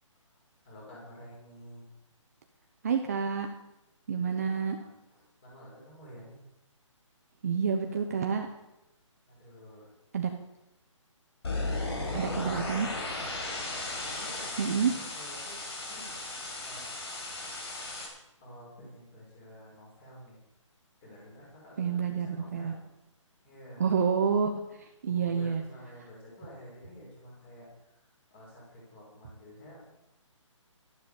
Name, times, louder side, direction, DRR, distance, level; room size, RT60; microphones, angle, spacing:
voice 1, 0.6-1.9 4.1-6.4 7.8-8.4 9.3-9.9 11.9-13.2 14.1-15.6 15.9-16.1 16.6-16.9 18.4-20.4 21.0-22.9 23.4-23.9 25.1-27.9 28.3-29.9, equal, 20° left, -4 dB, 6.1 m, -50 dB
voice 2, 2.8-3.5 4.1-4.8 7.4-8.5 10.1-10.3 12.1-12.9 14.6-14.9 21.8-22.8 23.8-24.5 24.8-25.6, right 6 dB, 30° right, 4 dB, 0.9 m, -28 dB
sound 1, 11.4-18.1, left 2 dB, 55° left, 5.2 m, -36 dB
12.5 x 11.0 x 7.1 m, 0.91 s
hypercardioid pair, 175°, 17 cm